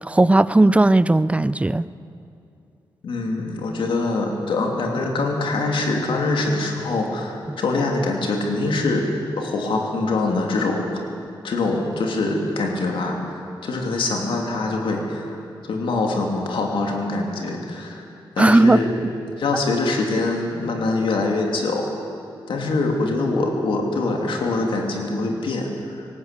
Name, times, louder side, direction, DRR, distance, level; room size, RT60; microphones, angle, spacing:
voice 1, 0.0-1.9 7.5-7.6 18.4-18.8, right 2 dB, 15° right, 16 dB, 0.6 m, -16 dB
voice 2, 3.0-9.1 9.3-11.0 11.4-15.4 15.7-18.0 18.4-18.9 19.4-21.9 22.5-26.0, left 3 dB, 90° left, 1 dB, 3.0 m, -24 dB
20.0 x 17.5 x 8.4 m, 2.6 s
cardioid pair, 75°, 9 cm